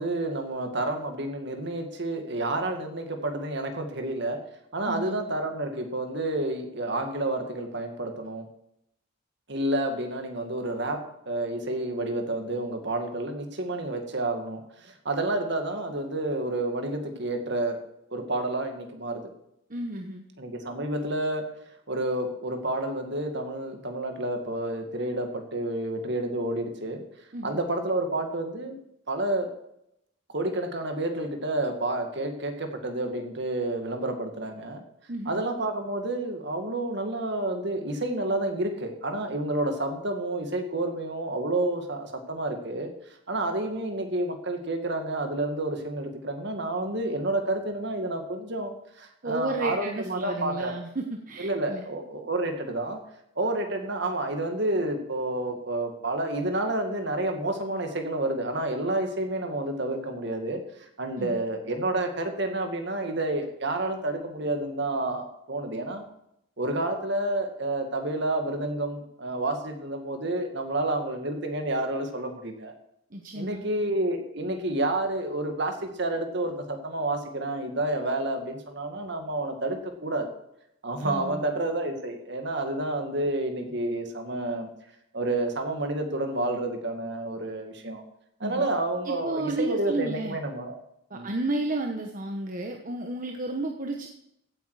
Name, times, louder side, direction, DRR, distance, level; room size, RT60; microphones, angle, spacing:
voice 1, 0.0-4.4 4.7-8.4 9.5-11.0 11.3-17.8 18.1-19.2 20.4-21.4 21.9-27.0 27.4-28.8 29.1-29.5 30.3-34.8 35.3-42.9 43.3-48.7 49.0-50.7 51.4-53.0 53.4-60.6 61.0-66.0 66.6-72.7 73.3-80.3 80.8-84.7 85.1-88.0 88.4-90.8 91.1-91.3, right 2 dB, 60° right, 5 dB, 2.1 m, -29 dB
voice 2, 4.9-5.2 19.7-20.2 27.3-27.6 35.1-35.4 49.2-51.8 61.2-61.4 73.1-73.6 81.0-81.4 88.4-88.7 89.0-90.4 91.1-94.1, right 2 dB, 45° right, 3 dB, 1.1 m, -32 dB
16.0 x 8.8 x 4.9 m, 0.78 s
head